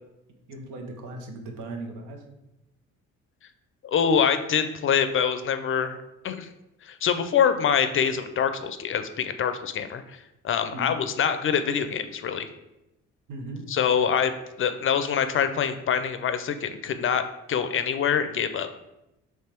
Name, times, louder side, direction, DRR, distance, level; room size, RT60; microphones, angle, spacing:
voice 1, 0.5-2.2 10.7-11.0 13.3-13.6, right 2 dB, 90° right, 4 dB, 0.8 m, -37 dB
voice 2, 3.8-6.0 6.2-6.5 6.8-12.5 13.7-14.3 14.6-17.2 17.5-18.7, left 7 dB, 45° left, 10 dB, 0.4 m, -25 dB
3.4 x 3.1 x 4.4 m, 0.91 s
cardioid pair, 90°, 30 cm